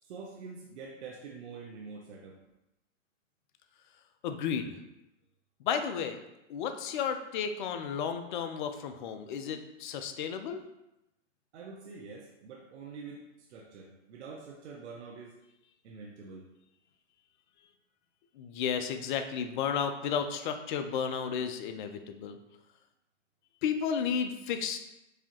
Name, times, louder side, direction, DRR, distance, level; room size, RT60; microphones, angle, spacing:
voice 1, 0.0-2.4 11.5-15.4 15.8-16.5, right 4 dB, 60° right, 0 dB, 0.7 m, -46 dB
voice 2, 4.2-4.8 5.6-6.2 6.5-10.6 18.4-22.4 23.6-24.8, left 7 dB, 40° left, 7 dB, 0.4 m, -33 dB
4.8 x 2.7 x 2.9 m, 0.90 s
hypercardioid pair, 130°, 38 cm